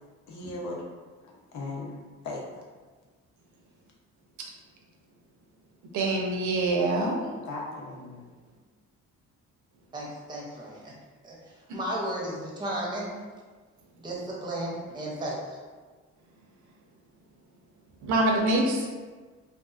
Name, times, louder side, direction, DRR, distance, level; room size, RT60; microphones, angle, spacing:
voice 1, 0.3-0.8 1.5-2.0 2.2-2.6 7.4-8.2, left 2 dB, 70° left, -3 dB, 0.7 m, -37 dB
voice 2, 5.9-7.2 11.7-11.8 18.0-18.9, right 2 dB, 70° right, 0 dB, 0.6 m, -25 dB
voice 3, 9.9-10.9 11.2-13.1 14.0-15.6, right 1 dB, 15° right, -4 dB, 0.7 m, -34 dB
2.6 x 2.4 x 2.4 m, 1.4 s
cardioid pair, 90°, 30 cm